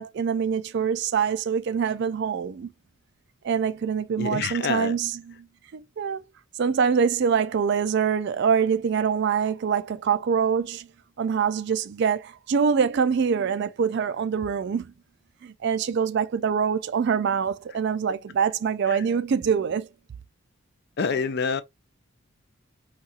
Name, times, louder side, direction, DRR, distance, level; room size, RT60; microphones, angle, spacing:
voice 1, 0.0-2.7 3.4-5.5 5.7-6.2 6.6-10.9 11.2-14.9 15.4-19.9, right 6 dB, 55° right, 0.3 m, -24 dB
voice 2, 4.2-4.9 21.0-21.6, left 5 dB, 50° left, 0.4 m, -26 dB
4.1 x 2.4 x 2.3 m
head